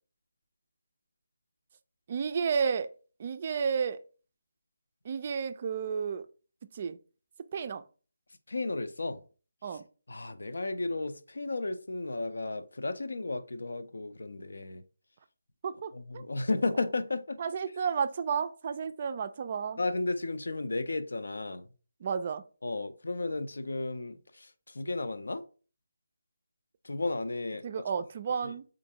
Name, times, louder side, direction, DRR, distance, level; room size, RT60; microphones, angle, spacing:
voice 1, 2.1-2.9 3.2-4.0 5.0-6.3 6.7-7.0 7.5-7.8 9.6-9.8 15.6-16.3 17.4-19.8 22.0-22.4 27.6-28.7, right 6 dB, 40° right, 0.3 m, -32 dB
voice 2, 8.5-9.2 10.1-14.8 15.9-17.4 19.8-21.7 22.6-25.4 26.8-27.6 28.4-28.5, left 2 dB, 75° left, 0.4 m, -33 dB
4.4 x 2.5 x 2.8 m
figure-of-eight pair, 155°, 0 cm